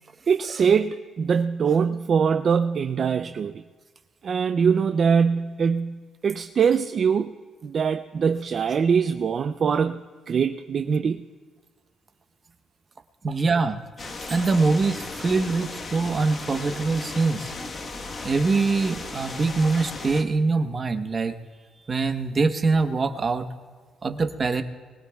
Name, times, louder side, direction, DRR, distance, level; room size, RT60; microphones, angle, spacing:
voice 1, 0.3-3.6 4.2-7.3 7.6-10.0 10.3-11.2, right 6 dB, 50° right, 8 dB, 0.4 m, -23 dB
voice 2, 13.2-17.5 18.2-21.4 21.9-23.5 24.0-24.6, right 3 dB, 35° right, 6 dB, 1.0 m, -24 dB
sound 1, 14.0-20.2, left 3 dB, 45° left, 1.3 m, -36 dB
24.0 x 20.5 x 2.3 m, 1.5 s
cardioid pair, 90°, 0 cm